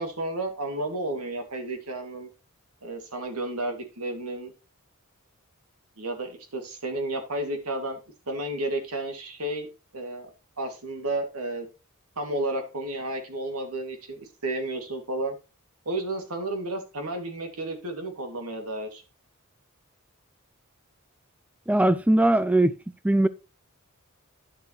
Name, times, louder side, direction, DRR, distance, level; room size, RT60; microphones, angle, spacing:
voice 1, 0.0-2.3 2.8-4.5 6.0-8.0 8.3-9.7 9.9-10.3 10.6-11.7 12.2-15.3 15.9-19.0, right 2 dB, 90° right, 2.4 m, -32 dB
voice 2, 21.7-22.8 23.0-23.3, right 1 dB, 5° right, 0.3 m, -20 dB
10.5 x 7.1 x 3.1 m
head